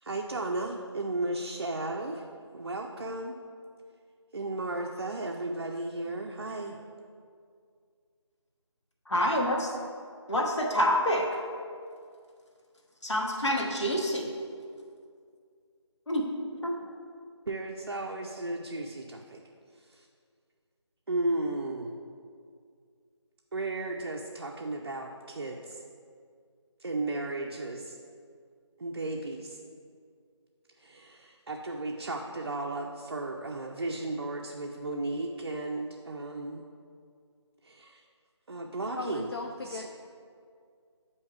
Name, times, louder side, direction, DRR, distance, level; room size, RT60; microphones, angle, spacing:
voice 1, 0.0-2.2 2.5-3.3 4.3-6.8 17.5-19.4 19.8-20.1 21.1-22.0 23.5-25.8 26.8-28.0 28.8-29.6 30.8-36.6 37.6-38.0 38.5-39.3 39.7-39.9, right 2 dB, 50° right, 0 dB, 0.4 m, -34 dB
voice 2, 9.0-9.7 10.3-11.4 13.0-14.3 16.1-16.3 16.5-16.8, equal, 70° left, -1 dB, 1.1 m, -27 dB
voice 3, 38.9-39.9, left 3 dB, 55° left, 1 dB, 0.4 m, -37 dB
8.0 x 2.8 x 4.6 m, 2.2 s
figure-of-eight pair, 160°, 15 cm